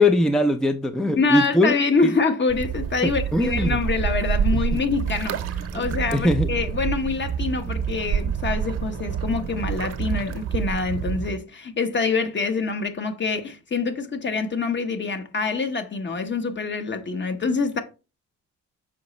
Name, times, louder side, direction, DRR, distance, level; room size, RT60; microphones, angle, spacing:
voice 1, 0.0-1.7 3.0-3.8 4.5-4.6 5.7-6.5, left 1 dB, ahead, 0.4 m, -21 dB
voice 2, 1.2-17.8, left 4 dB, 40° left, 1.0 m, -25 dB
sound 1, 2.5-11.4, right 8 dB, 55° right, 0.9 m, -27 dB
6.3 x 4.8 x 3.1 m
cardioid pair, 90°, 30 cm